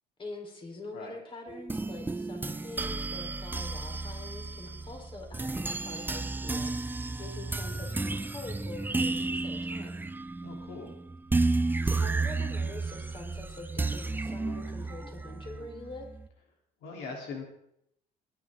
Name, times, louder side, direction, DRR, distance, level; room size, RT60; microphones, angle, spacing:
voice 1, 0.2-6.7 7.2-10.1 11.8-16.1, left 2 dB, 30° left, 1 dB, 4.2 m, -44 dB
sound 1, 1.5-16.3, right 3 dB, 10° right, 0.6 m, -32 dB
voice 2, 10.4-10.9 16.8-17.4, left 4 dB, 85° left, 0 dB, 3.4 m, -41 dB
21.0 x 10.5 x 3.8 m, 0.74 s
cardioid pair, 110°, 17 cm